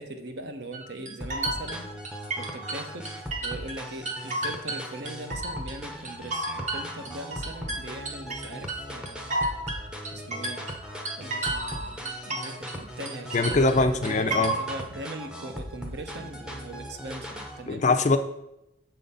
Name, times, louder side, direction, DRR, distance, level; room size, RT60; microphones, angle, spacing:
voice 1, 0.0-1.9 2.3-9.4 10.1-10.7 11.2-17.9, right 2 dB, 55° right, 7 dB, 0.7 m, -40 dB
sound 1, 0.7-3.8 4.1-5.8 6.0-12.8 13.1-14.8, right 2 dB, 35° right, 1.0 m, -32 dB
sound 2, 1.2-17.6, equal, 5° right, 0.7 m, -39 dB
voice 2, 13.3-14.5 17.7-18.2, left 3 dB, 35° left, 9 dB, 0.4 m, -22 dB
7.3 x 3.9 x 5.4 m, 0.86 s
head